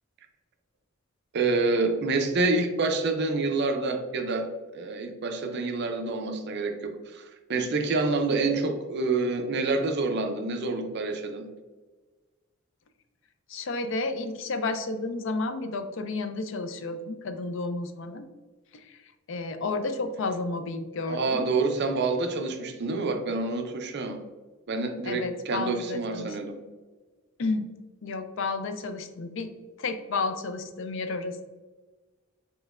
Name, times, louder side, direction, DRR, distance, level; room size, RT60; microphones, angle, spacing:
voice 1, 1.3-7.2 7.5-11.5 21.1-24.2 24.7-26.6, right 3 dB, 55° right, 5 dB, 0.5 m, -27 dB
voice 2, 13.5-18.3 18.7-19.0 19.3-21.5 25.1-26.4 27.4-27.7 28.0-29.5 29.8-31.4, left 3 dB, 70° left, 9 dB, 0.5 m, -31 dB
5.3 x 3.1 x 2.4 m, 1.3 s
head